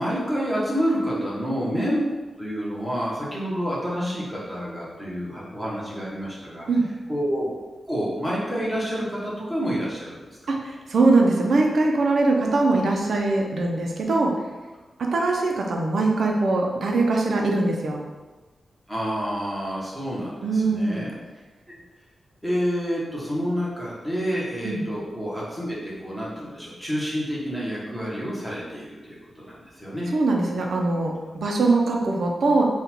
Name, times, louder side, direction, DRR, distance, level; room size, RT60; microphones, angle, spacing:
voice 1, 0.0-2.0 2.4-6.7 7.1-7.5 7.9-10.5 15.2-15.3 18.9-21.1 22.4-30.1, equal, ahead, -6 dB, 1.0 m, -28 dB
voice 2, 10.5-14.4 15.0-18.0 20.4-21.0 24.6-24.8 30.1-32.6, right 3 dB, 60° right, 1 dB, 0.6 m, -22 dB
3.9 x 2.4 x 4.4 m, 1.2 s
wide cardioid pair, 160°, 0 cm